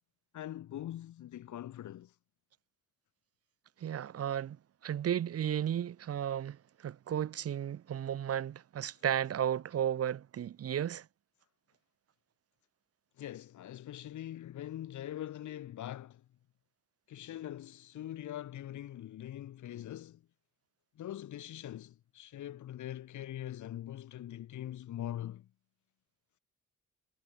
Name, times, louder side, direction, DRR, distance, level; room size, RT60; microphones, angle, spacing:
voice 1, 0.3-2.1 13.2-16.2 17.1-20.2 21.0-25.5, left 12 dB, 75° left, 4.4 m, -43 dB
voice 2, 3.8-4.6 4.8-6.6 6.8-11.0, right 10 dB, 50° right, 1.1 m, -34 dB
cardioid pair, 90°, 30 cm